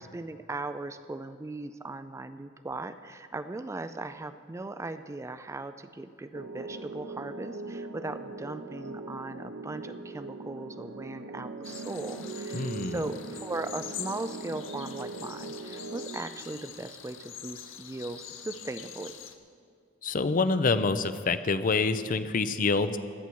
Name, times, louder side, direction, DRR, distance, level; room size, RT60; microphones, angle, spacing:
voice 1, 0.0-19.2, right 2 dB, 15° right, 11 dB, 0.3 m, -38 dB
sound 1, 6.3-16.2, right 3 dB, 85° right, 0.8 m, -40 dB
sound 2, 11.6-19.3, left 9 dB, 80° left, 0.8 m, -44 dB
voice 2, 12.5-13.0 20.0-23.0, left 4 dB, 45° left, 12 dB, 0.5 m, -26 dB
16.5 x 11.5 x 4.6 m, 2.3 s
head